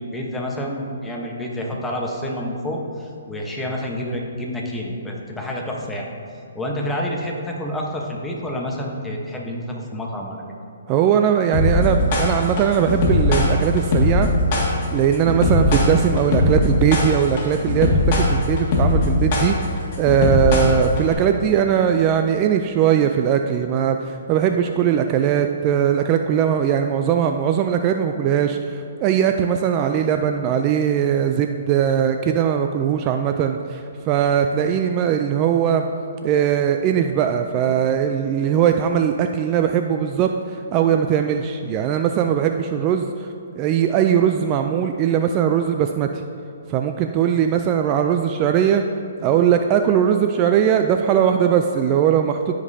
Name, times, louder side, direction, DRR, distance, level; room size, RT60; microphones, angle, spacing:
voice 1, 0.0-6.1 6.5-10.4, equal, 5° left, -2 dB, 1.0 m, -28 dB
voice 2, 10.9-14.3 14.9-35.8 36.2-43.3 43.6-46.1 46.7-48.8 49.2-52.6, right 8 dB, 30° right, 6 dB, 0.3 m, -20 dB
sound 1, 11.5-21.1, left 2 dB, 40° left, 1.9 m, -19 dB
15.0 x 5.2 x 2.7 m, 2.7 s
hypercardioid pair, 145°, 0 cm